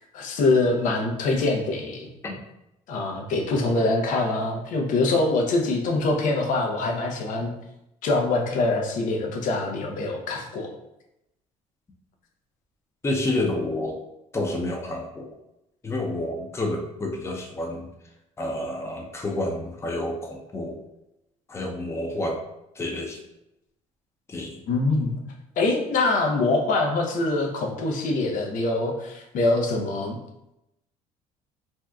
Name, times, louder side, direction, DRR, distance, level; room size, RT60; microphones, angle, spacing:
voice 1, 0.1-2.1 2.9-7.5 8.0-10.7 24.7-25.2 25.6-30.2, left 2 dB, 65° left, 2 dB, 0.7 m, -24 dB
voice 2, 13.0-14.0 14.3-15.3 15.8-17.9 18.4-20.8 21.5-22.4 22.8-23.2 24.3-24.6, left 1 dB, 20° left, 1 dB, 0.6 m, -29 dB
2.6 x 2.3 x 3.4 m, 0.87 s
cardioid pair, 95°, 14 cm